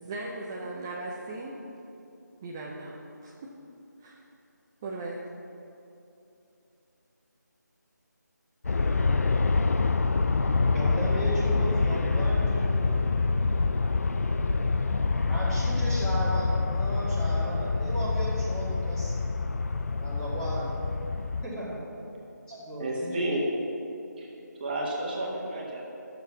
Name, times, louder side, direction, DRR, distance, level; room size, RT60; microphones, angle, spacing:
voice 1, 0.0-1.6 2.4-3.5 4.0-4.2 4.8-5.2, right 2 dB, 10° right, -3 dB, 0.5 m, -38 dB
Aircraft, 8.6-21.5, left 3 dB, 55° left, 0.5 m, -26 dB
voice 2, 10.7-13.0 15.3-19.1 20.0-20.7 21.4-21.9 22.5-23.3, right 1 dB, 5° left, -10 dB, 2.0 m, -35 dB
voice 3, 22.8-23.5 24.2-24.3 24.6-25.8, right 1 dB, 30° right, -3 dB, 1.7 m, -31 dB
11.0 x 7.0 x 6.0 m, 2.8 s
figure-of-eight pair, 160°, 10 cm